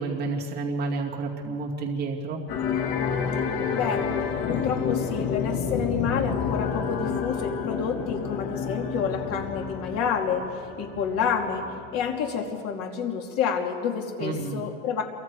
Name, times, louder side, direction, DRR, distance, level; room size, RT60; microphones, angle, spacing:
voice 1, 0.0-2.4 14.2-14.6, right 3 dB, 30° right, -2 dB, 2.4 m, -30 dB
sound 1, 2.5-12.2, left 6 dB, 65° left, 2.6 m, -29 dB
voice 2, 3.7-4.1 4.5-11.7 11.9-15.0, left 6 dB, 50° left, 2 dB, 2.9 m, -29 dB
28.0 x 24.0 x 4.8 m, 2.2 s
cardioid pair, 165°, 31 cm